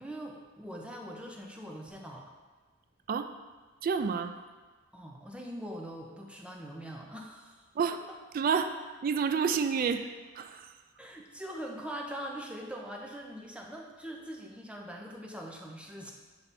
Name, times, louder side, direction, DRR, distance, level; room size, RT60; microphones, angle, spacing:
voice 1, 0.0-2.3 4.9-7.7 8.1-8.2 11.0-16.1, equal, 5° right, 0 dB, 0.6 m, -42 dB
voice 2, 3.8-4.3 7.8-8.0 8.3-8.7 9.0-10.1 10.4-10.7, right 6 dB, 45° right, 8 dB, 0.3 m, -29 dB
7.2 x 3.4 x 4.1 m, 1.3 s
head